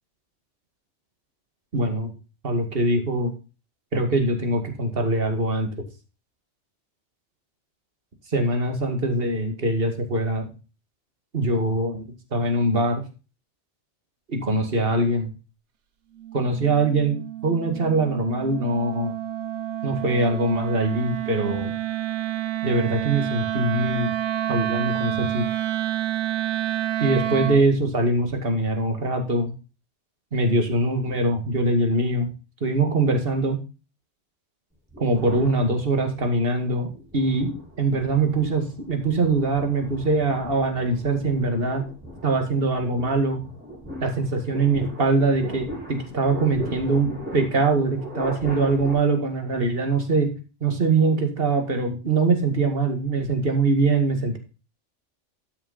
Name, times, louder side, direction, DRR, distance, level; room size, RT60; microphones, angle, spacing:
voice 1, 1.7-2.1 2.4-3.3 3.9-5.7 8.3-10.5 11.3-12.0 12.3-13.0 14.3-15.3 16.3-17.2 17.4-19.1 19.8-21.7 22.6-24.1 24.5-25.4 27.0-29.5 30.3-32.3 32.6-33.6 35.0-41.8 42.2-43.4 44.0-50.3 50.6-54.4, right 2 dB, 50° right, 5 dB, 2.2 m, -23 dB
Wind instrument woodwind instrument, 16.2-27.7, right 12 dB, 70° right, 1.1 m, -29 dB
sound 1, 34.9-36.3 36.9-48.9, right 1 dB, 10° right, 5.3 m, -39 dB
13.0 x 7.2 x 4.1 m, 0.32 s
omnidirectional pair, 1.2 m